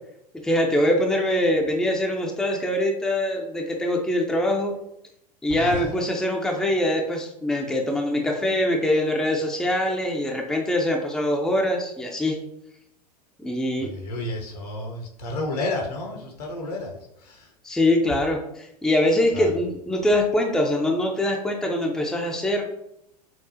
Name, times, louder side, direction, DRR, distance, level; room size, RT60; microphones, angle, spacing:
voice 1, 0.4-4.7 5.4-12.4 13.4-13.9 17.6-22.6, left 1 dB, 5° left, 1 dB, 0.6 m, -23 dB
voice 2, 5.5-6.0 13.8-17.5 19.3-19.5, left 2 dB, 75° left, 0 dB, 1.2 m, -31 dB
5.9 x 2.4 x 2.8 m, 0.79 s
figure-of-eight pair, 90°, 21 cm